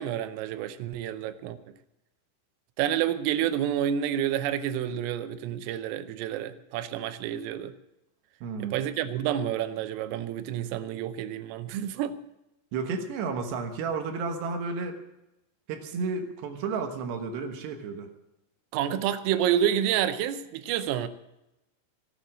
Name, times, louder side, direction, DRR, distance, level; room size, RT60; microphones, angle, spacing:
voice 1, 0.0-1.6 2.8-7.7 8.6-12.2 18.7-21.1, right 10 dB, 90° right, 11 dB, 3.4 m, -29 dB
voice 2, 8.4-8.8 12.7-15.0 15.7-18.1, right 4 dB, 70° right, 5 dB, 3.0 m, -32 dB
16.0 x 9.3 x 7.4 m, 0.91 s
omnidirectional pair, 5.8 m